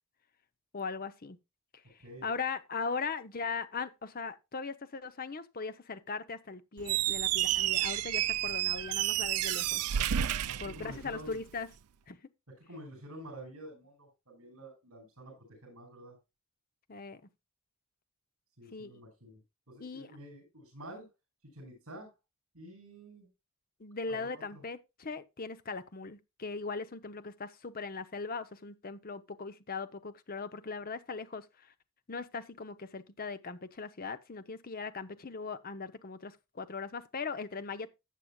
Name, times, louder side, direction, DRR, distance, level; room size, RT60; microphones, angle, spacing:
voice 1, 0.7-1.4 1.7-9.9 10.6-11.7 12.1-12.2 16.9-17.2 18.7-19.0 19.8-20.2 23.8-31.7 32.1-37.9, left 4 dB, 40° left, 0.8 m, -39 dB
Squeak, 6.8-11.4, right 12 dB, 85° right, 0.5 m, -31 dB
voice 2, 10.4-11.5 12.6-15.3 15.6-16.2 18.6-19.4 19.7-21.1 21.5-22.1 22.5-23.3 24.1-24.6, right 1 dB, 70° right, 6.0 m, -49 dB
13.5 x 8.4 x 2.3 m
head